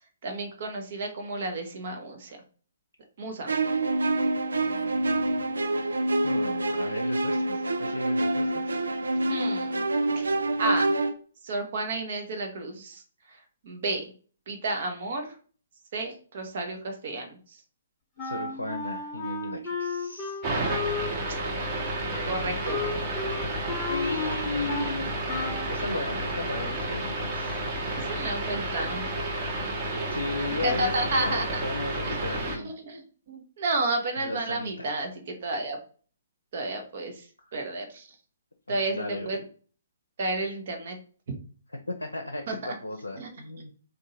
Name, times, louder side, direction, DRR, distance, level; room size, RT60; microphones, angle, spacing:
voice 1, 0.2-2.4 3.2-3.5 9.3-9.8 10.1-10.2 10.6-10.9 11.4-13.0 13.6-14.1 14.5-15.3 15.9-17.4 22.3-22.8 28.1-29.0 30.6-31.6 32.1-35.8 36.5-37.1 37.5-38.0 38.7-39.4 40.2-41.0 42.5-42.7 43.2-43.3, right 2 dB, 45° right, 4 dB, 1.1 m, -31 dB
sound 1, 3.5-11.1, right 2 dB, 65° right, 0.6 m, -26 dB
voice 2, 4.6-5.8 6.2-8.7 18.2-20.4 23.9-27.5 30.1-32.7 34.2-34.7 37.4-37.5 38.7-39.4 40.4-40.6 41.9-43.7, left 2 dB, 75° left, 3 dB, 0.6 m, -36 dB
Wind instrument woodwind instrument, 18.2-25.0 25.3-25.7, left 3 dB, 10° left, 1.0 m, -34 dB
sound 2, 20.4-32.6, right 1 dB, 20° right, 1.1 m, -31 dB
3.7 x 2.6 x 4.1 m, 0.41 s
figure-of-eight pair, 130°, 0 cm